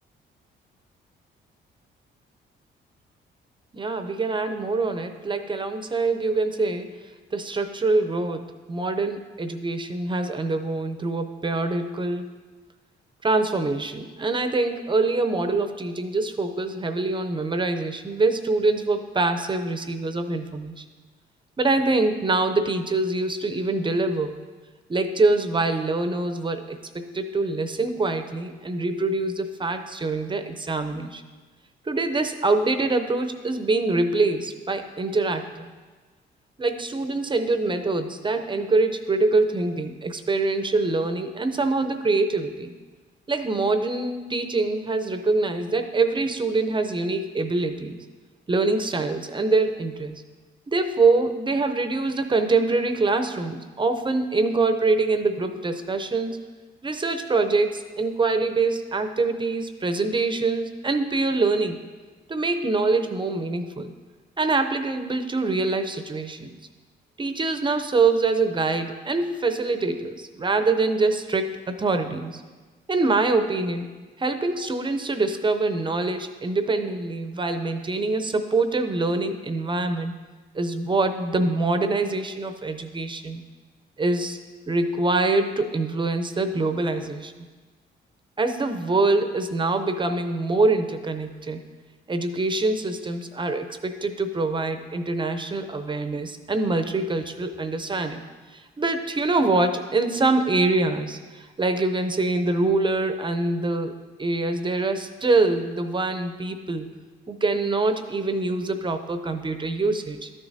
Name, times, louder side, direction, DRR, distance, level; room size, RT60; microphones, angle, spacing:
voice 1, 3.7-7.0 7.3-12.3 13.2-20.8 21.6-24.4 24.9-31.2 31.9-35.7 36.6-42.7 43.3-48.0 48.5-50.2 50.7-56.4 56.8-61.8 62.3-63.9 64.4-66.6 67.2-72.4 72.9-73.9 74.2-80.1 80.5-83.4 84.0-87.5 88.4-91.6 92.1-98.2 98.5-103.9 104.2-106.9 107.3-110.3, right 3 dB, 25° right, 8 dB, 0.6 m, -24 dB
12.5 x 7.1 x 2.7 m, 1.3 s
cardioid pair, 90°, 20 cm